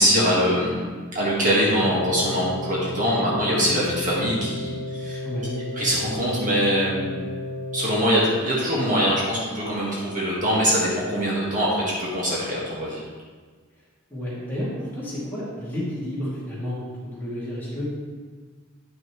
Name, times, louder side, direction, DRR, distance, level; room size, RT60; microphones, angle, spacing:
voice 1, 0.0-5.2 5.7-7.2 7.7-13.0, equal, 40° right, -6 dB, 1.7 m, -23 dB
sound 1, 1.8-8.1, left 2 dB, 70° left, 0.8 m, -33 dB
voice 2, 5.2-5.6 14.1-17.8, equal, 10° left, -9 dB, 2.5 m, -31 dB
10.0 x 6.1 x 3.1 m, 1.5 s
head